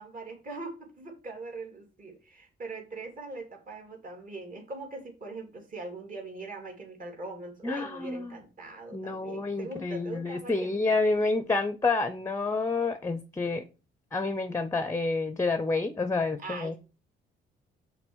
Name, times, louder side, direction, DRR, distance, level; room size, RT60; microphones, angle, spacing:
voice 1, 0.0-11.0 16.4-16.8, right 2 dB, 45° right, 2.7 m, -41 dB
voice 2, 7.6-8.4 8.9-13.7 14.1-16.8, left 3 dB, 15° left, 0.6 m, -29 dB
5.9 x 4.0 x 6.2 m
cardioid pair, 90°, 20 cm